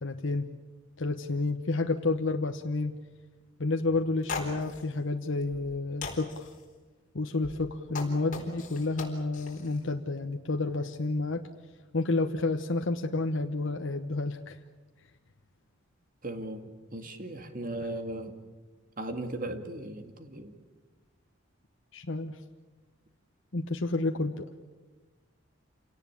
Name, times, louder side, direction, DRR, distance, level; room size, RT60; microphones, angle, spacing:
voice 1, 0.0-0.5 1.0-3.0 3.6-6.5 7.1-11.4 11.9-14.6 21.9-22.3 23.5-24.5, left 3 dB, 65° left, 4 dB, 1.0 m, -30 dB
sound 1, 3.9-4.0 4.2-4.8 5.4-5.7 6.0-6.6 7.4-9.8, left 4 dB, 40° left, 4.2 m, -39 dB
voice 2, 16.2-18.3 19.0-20.5, right 1 dB, 40° right, 7 dB, 2.1 m, -37 dB
27.5 x 18.0 x 8.4 m, 1.3 s
head